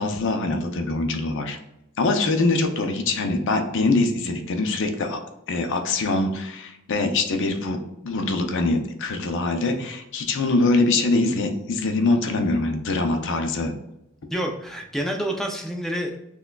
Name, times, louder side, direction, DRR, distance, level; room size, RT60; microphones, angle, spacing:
voice 1, 0.0-1.6 2.0-5.2 5.5-7.8 8.0-13.7, left 2 dB, 55° left, 5 dB, 0.5 m, -23 dB
voice 2, 14.3-16.2, equal, ahead, 1 dB, 0.4 m, -28 dB
6.0 x 2.2 x 2.2 m, 0.86 s
head